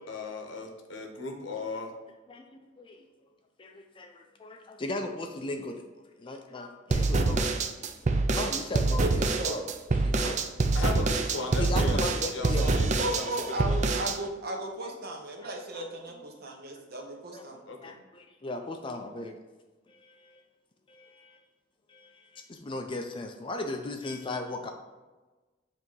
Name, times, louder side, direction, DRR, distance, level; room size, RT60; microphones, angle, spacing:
voice 1, 0.1-1.9 10.7-13.8 17.7-18.0, left 3 dB, 75° left, 3 dB, 1.0 m, -36 dB
voice 2, 3.6-5.8 6.2-7.5 8.3-9.6 10.0-10.4 11.5-12.7 15.7-15.8 17.3-19.3 19.9-20.4 20.9-21.4 21.9-24.7, left 2 dB, 25° left, 5 dB, 0.4 m, -37 dB
sound 1, 6.9-14.2, right 3 dB, 40° right, 0.4 m, -26 dB
voice 3, 9.0-9.6 13.0-17.6, right 1 dB, 55° right, 2 dB, 1.0 m, -35 dB
7.5 x 2.8 x 4.6 m, 1.2 s
head